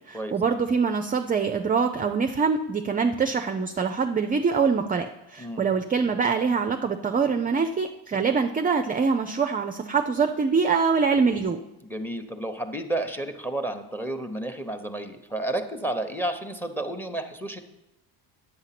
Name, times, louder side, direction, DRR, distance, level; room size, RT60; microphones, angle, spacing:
voice 1, 0.1-11.6, right 5 dB, 20° right, 7 dB, 0.4 m, -24 dB
voice 2, 11.8-17.6, right 1 dB, 5° left, 7 dB, 0.8 m, -31 dB
9.4 x 7.8 x 5.8 m, 0.96 s
cardioid pair, 140°, 42 cm